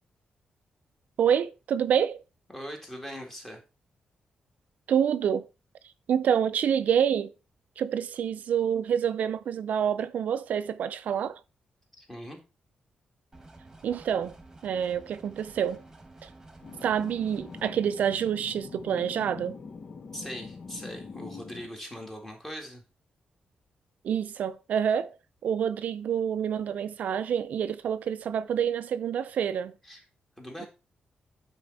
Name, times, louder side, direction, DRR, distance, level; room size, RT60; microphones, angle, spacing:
voice 1, 1.2-2.2 4.9-5.5 6.1-7.3 7.8-11.4 13.8-14.3 14.6-15.8 16.2-16.3 16.8-19.6 24.0-25.2 25.4-29.7, right 8 dB, 70° right, 0.4 m, -27 dB
voice 2, 2.5-3.6 12.0-12.4 20.1-22.8 29.8-30.0 30.4-30.7, equal, 10° left, 1.9 m, -40 dB
sound 1, 13.3-17.7, right 2 dB, 15° right, 1.4 m, -51 dB
sound 2, 16.6-21.7, left 4 dB, 40° left, 0.6 m, -43 dB
8.8 x 4.3 x 4.0 m
wide cardioid pair, 140°, 3 cm